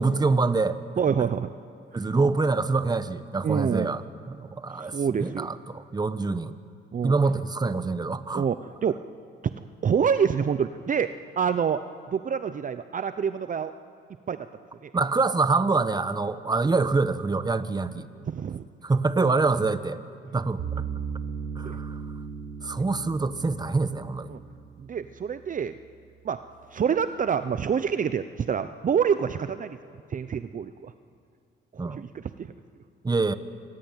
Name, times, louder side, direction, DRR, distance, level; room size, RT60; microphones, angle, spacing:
voice 1, 0.0-0.8 1.9-4.0 4.3-6.6 7.0-8.4 14.9-18.1 18.8-20.0 20.3-20.8 21.6-22.0 22.6-24.3 31.8-32.0 33.0-33.3, right 3 dB, 20° right, 12 dB, 1.2 m, -25 dB
voice 2, 1.0-1.5 3.4-3.9 4.8-5.5 6.9-7.1 8.3-9.0 9.8-11.1 11.4-11.8 12.1-13.7 14.3-14.4 14.8-14.9 18.3-18.6 21.6-21.8 24.3-24.4 24.8-25.8 26.2-26.4 26.7-29.8 30.1-30.9 31.7-32.5, right 7 dB, 40° right, 11 dB, 0.8 m, -27 dB
sound 1, 20.6-25.7, right 6 dB, 85° right, 3.6 m, -37 dB
26.0 x 20.0 x 9.2 m, 2.3 s
cardioid pair, 90°, 20 cm